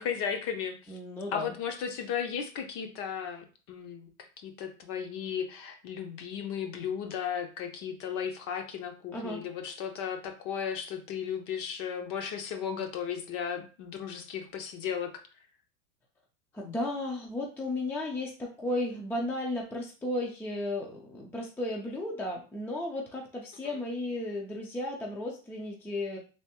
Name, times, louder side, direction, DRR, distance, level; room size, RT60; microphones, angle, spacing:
voice 1, 0.0-1.0 1.3-15.1 23.6-23.8, left 7 dB, 40° left, 6 dB, 0.7 m, -35 dB
voice 2, 0.9-1.5 9.1-9.4 16.5-26.2, left 1 dB, 5° left, 0 dB, 0.4 m, -34 dB
3.5 x 2.9 x 2.9 m, 0.36 s
supercardioid pair, 120°, 36 cm